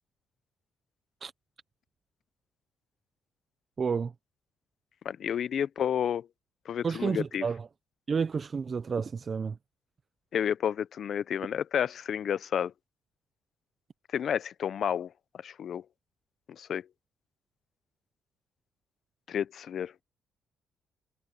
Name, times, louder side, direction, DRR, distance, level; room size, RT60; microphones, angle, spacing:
voice 1, 3.8-4.1 6.8-7.7 8.1-9.6, right 5 dB, 40° right, 0.6 m, -30 dB
voice 2, 5.0-6.3 6.7-7.5 10.3-12.7 14.1-15.1 15.4-15.8 16.5-16.9 19.3-19.9, left 8 dB, 60° left, 0.5 m, -30 dB
cardioid pair, 90°, 0 cm